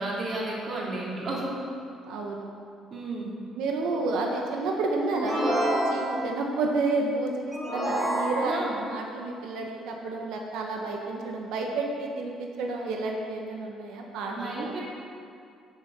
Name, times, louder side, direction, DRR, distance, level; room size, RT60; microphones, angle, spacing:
voice 1, 0.0-1.5 2.9-3.3 8.4-8.8 14.3-14.8, right 2 dB, 40° right, -4 dB, 2.7 m, -32 dB
voice 2, 2.0-2.5 3.5-14.7, right 3 dB, 85° right, 1 dB, 1.4 m, -30 dB
sound 1, 5.1-6.4 7.5-8.8, right 1 dB, 10° right, 2.4 m, -28 dB
8.0 x 7.7 x 7.0 m, 2.4 s
cardioid pair, 135°, 0 cm